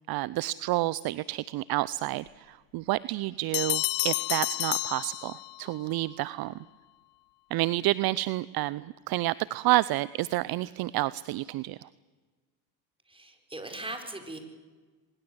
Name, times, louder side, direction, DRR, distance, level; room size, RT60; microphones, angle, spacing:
voice 1, 0.1-6.5 7.5-11.9, right 18 dB, 50° right, 20 dB, 0.7 m, -29 dB
Bell, 3.5-5.8, left 22 dB, 80° left, 0.8 m, -30 dB
voice 2, 13.1-14.4, right 2 dB, 10° right, 5 dB, 5.1 m, -39 dB
24.0 x 21.5 x 8.0 m, 1.4 s
hypercardioid pair, 80°, 47 cm